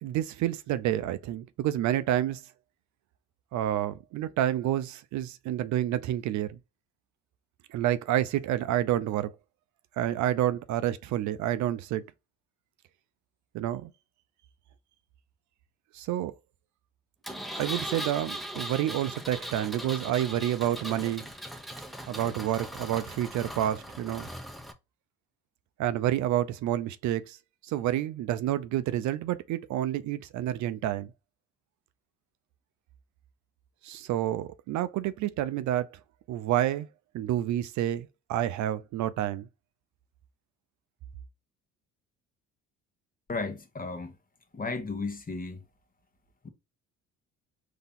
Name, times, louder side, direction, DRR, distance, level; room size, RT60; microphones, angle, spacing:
voice 1, 0.0-2.4 3.5-6.6 7.7-9.3 10.0-12.0 13.5-13.9 15.9-16.3 17.6-21.3 22.1-24.3 25.8-27.4 27.6-31.1 33.8-35.9 36.3-36.9 37.1-39.5, right 12 dB, 60° right, 0.5 m, -29 dB
Engine, 17.2-24.7, equal, ahead, 0.7 m, -39 dB
voice 2, 43.3-44.1 44.5-45.6 46.4-46.5, left 3 dB, 25° left, 1.2 m, -34 dB
3.9 x 2.8 x 3.6 m
supercardioid pair, 70°, 33 cm